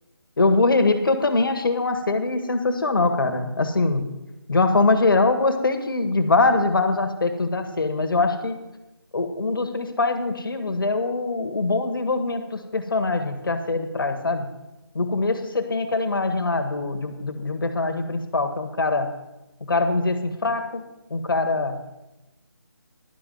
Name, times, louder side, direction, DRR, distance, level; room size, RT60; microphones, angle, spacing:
voice 1, 0.4-4.1 4.5-8.6 9.1-14.5 14.9-19.1 19.6-21.8, left 3 dB, 60° left, 7 dB, 1.4 m, -23 dB
11.0 x 5.4 x 7.7 m, 0.99 s
figure-of-eight pair, 165°, 13 cm